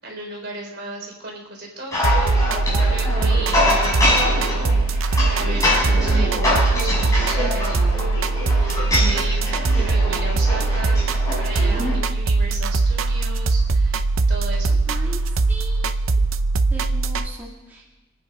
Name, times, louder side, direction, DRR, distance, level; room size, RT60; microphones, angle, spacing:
voice 1, 0.0-4.7 5.2-11.1 11.4-14.8, right 2 dB, 50° right, 0 dB, 4.0 m, -35 dB
sound 1, 1.9-12.0, left 1 dB, 15° left, 6.6 m, -24 dB
sound 2, 2.0-17.3, right 3 dB, 75° right, 0.7 m, -21 dB
voice 2, 14.9-16.1 16.7-17.9, right 1 dB, 10° right, -4 dB, 1.8 m, -39 dB
26.5 x 9.6 x 5.2 m, 1.1 s
head